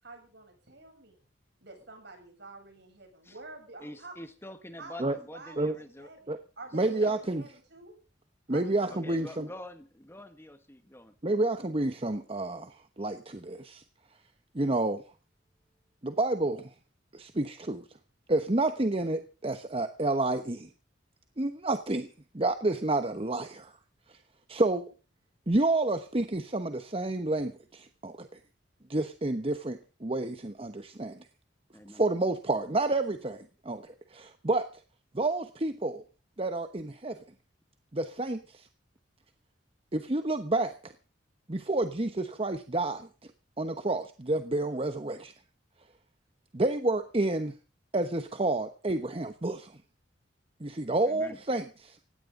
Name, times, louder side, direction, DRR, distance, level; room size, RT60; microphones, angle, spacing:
voice 1, 0.0-1.2 1.6-4.3 4.8-7.9 8.5-9.5, right 3 dB, 65° right, 4 dB, 7.8 m, -49 dB
voice 2, 3.8-6.1 6.8-7.1 9.0-11.1 31.7-32.0 51.1-51.4, left 1 dB, 15° left, 9 dB, 1.3 m, -46 dB
voice 3, 6.7-7.4 8.5-9.5 11.2-13.8 14.5-15.0 16.0-16.7 17.1-17.8 18.3-20.7 21.4-22.1 22.3-23.7 24.1-24.2 24.5-24.9 25.5-28.4 28.9-31.2 31.9-34.7 35.1-36.0 36.4-37.2 37.9-38.7 39.9-40.9 41.5-43.1 43.6-45.3 46.5-47.5 47.9-49.8 50.6-52.0, right 2 dB, 30° right, 8 dB, 1.1 m, -29 dB
19.0 x 16.5 x 3.8 m, 0.36 s
head